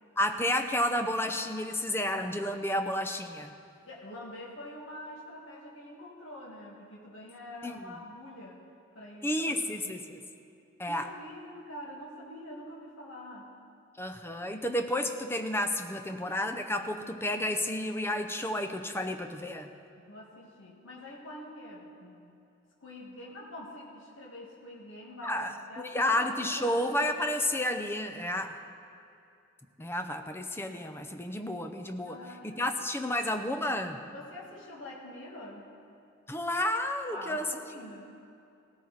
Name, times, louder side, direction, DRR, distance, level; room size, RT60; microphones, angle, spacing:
voice 1, 0.2-3.5 7.6-7.8 9.2-10.2 10.8-11.1 14.0-19.7 25.2-28.6 29.8-34.0 36.3-37.4, left 1 dB, 10° left, 6 dB, 0.6 m, -31 dB
voice 2, 3.8-8.6 8.9-10.2 10.9-13.5 20.0-22.3 22.8-27.2 32.0-32.8 34.1-35.7 37.1-38.1, left 1 dB, 75° left, -3 dB, 1.7 m, -45 dB
17.5 x 13.5 x 4.0 m, 2.6 s
head